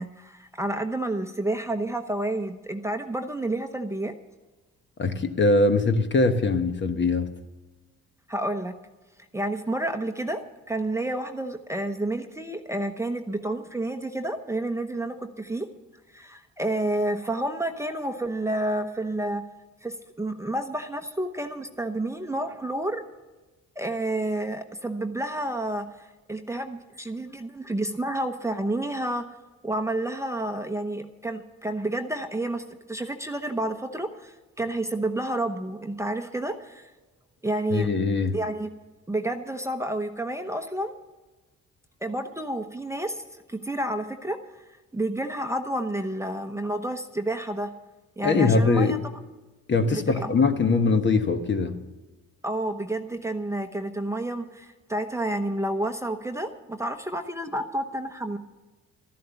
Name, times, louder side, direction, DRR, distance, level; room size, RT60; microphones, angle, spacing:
voice 1, 0.0-4.1 8.3-8.8 9.3-15.7 16.1-19.4 19.8-23.0 23.8-29.3 29.6-36.9 37.4-37.9 38.3-38.7 39.1-40.9 42.0-44.4 44.9-47.7 48.2-49.0 49.9-50.3 52.4-58.4, right 1 dB, 10° right, 0.9 m, -30 dB
voice 2, 5.0-7.3 37.7-38.4 48.2-48.9 49.7-51.8, left 3 dB, 40° left, 1.2 m, -22 dB
13.0 x 11.0 x 7.0 m
cardioid pair, 90°, 30 cm